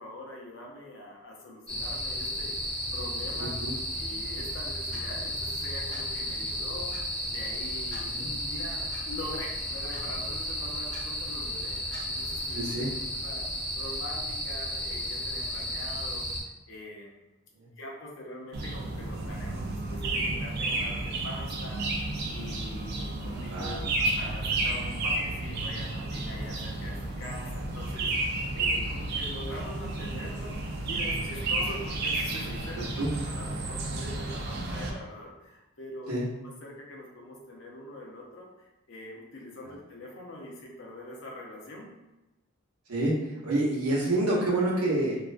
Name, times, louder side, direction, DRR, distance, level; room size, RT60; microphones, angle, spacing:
voice 1, 0.0-3.6 3.9-12.7 13.2-13.4 13.8-16.3 16.7-17.2 17.8-41.9, left 1 dB, 60° left, -1 dB, 0.5 m, -44 dB
sound 1, 1.7-16.4, equal, 5° left, 0.5 m, -33 dB
voice 2, 3.4-3.7 8.0-8.3 12.5-12.9 17.6-17.7 23.5-23.9 28.8-29.0 33.0-33.1 36.1-36.2 42.9-45.2, right 1 dB, 90° right, -4 dB, 0.8 m, -28 dB
Clock, 4.9-5.1 5.9-6.1 6.9-7.1 7.9-8.1 8.9-9.0 9.9-10.1 10.9-11.0 11.9-12.1, equal, 35° left, 0.8 m, -46 dB
sound 2, 18.5-34.9, right 2 dB, 45° right, 0.3 m, -32 dB
2.4 x 2.1 x 2.4 m, 1.0 s
head